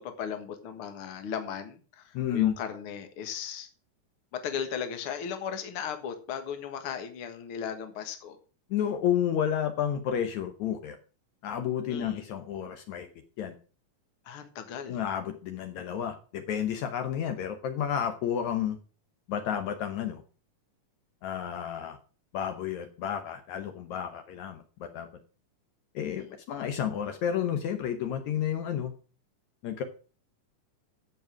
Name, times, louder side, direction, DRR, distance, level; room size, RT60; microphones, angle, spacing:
voice 1, 0.0-3.7 4.3-8.4 11.9-12.2 14.3-15.0 26.2-26.3, left 7 dB, 50° left, 7 dB, 2.1 m, -37 dB
voice 2, 2.1-2.5 8.7-11.0 11.4-13.1 13.4-13.5 14.9-18.8 19.3-20.2 21.2-22.0 22.3-25.1 26.0-28.9 29.6-29.8, left 9 dB, 70° left, 7 dB, 2.2 m, -31 dB
14.5 x 5.4 x 6.1 m, 0.38 s
omnidirectional pair, 3.6 m